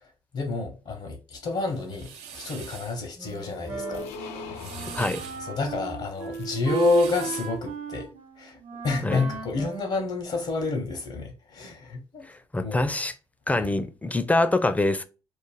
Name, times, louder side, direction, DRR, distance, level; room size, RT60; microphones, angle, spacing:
voice 1, 0.3-4.1 5.4-8.1 8.4-8.6 8.8-12.3 12.6-12.8 13.5-13.7, left 3 dB, 65° left, 0.7 m, -29 dB
sound 1, 1.7-3.0 4.4-5.4 6.5-7.6, right 7 dB, 85° right, 0.4 m, -42 dB
Wind instrument woodwind instrument, 3.1-10.6, right 6 dB, 70° right, 0.9 m, -36 dB
sound 2, 3.2-7.3, left 5 dB, 85° left, 0.4 m, -42 dB
voice 2, 12.5-13.1 13.5-15.0, left 2 dB, 15° left, 0.4 m, -24 dB
2.4 x 2.0 x 3.2 m
supercardioid pair, 55°, 11 cm